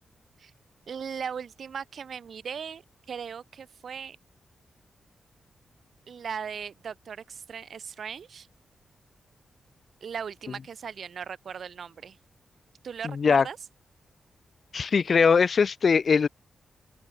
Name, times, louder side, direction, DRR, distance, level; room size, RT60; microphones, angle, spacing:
voice 1, 0.9-2.8 3.1-4.2 6.1-8.5 10.0-12.2 12.8-13.6, right 7 dB, 65° right, 5.3 m, -38 dB
voice 2, 14.7-16.3, left 5 dB, 55° left, 0.3 m, -21 dB
cardioid pair, 90°, 0 cm